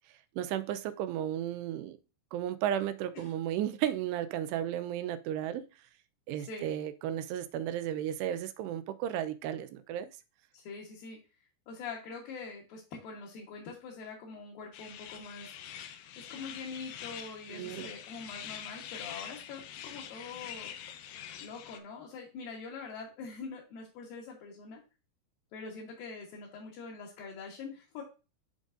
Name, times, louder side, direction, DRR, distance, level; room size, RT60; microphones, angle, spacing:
voice 1, 0.4-2.0 2.3-5.7 6.3-10.1 17.5-17.9, right 11 dB, 80° right, 2.7 m, -34 dB
voice 2, 6.4-6.7 10.5-11.2 11.7-15.5 16.1-20.7 21.4-24.8 25.5-28.0, left 4 dB, 65° left, 2.7 m, -44 dB
sound 1, 14.7-21.8, left 10 dB, 90° left, 2.0 m, -45 dB
11.5 x 3.8 x 2.5 m
omnidirectional pair, 4.9 m